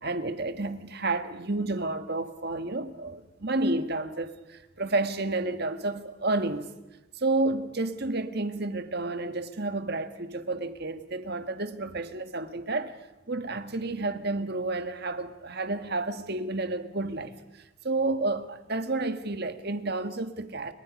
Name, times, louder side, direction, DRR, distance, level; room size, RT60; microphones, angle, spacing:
voice 1, 0.0-6.7 7.1-13.0 13.3-17.3 17.8-20.7, right 2 dB, 50° right, 1.7 m, -30 dB
29.0 x 26.0 x 5.3 m
head